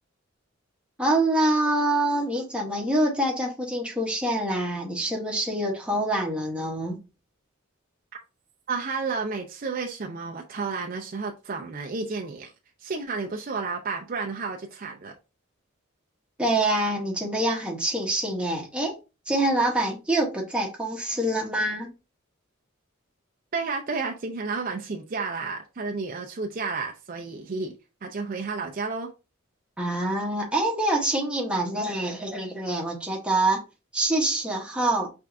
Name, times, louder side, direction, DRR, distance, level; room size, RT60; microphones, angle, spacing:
voice 1, 1.0-7.0 16.4-18.9 19.3-21.9 29.8-33.6 33.9-35.1, right 1 dB, 5° right, 1.0 m, -25 dB
voice 2, 8.7-12.5 12.8-15.1 23.5-27.7 28.0-29.1, right 4 dB, 45° right, 0.5 m, -31 dB
4.7 x 3.4 x 2.5 m
head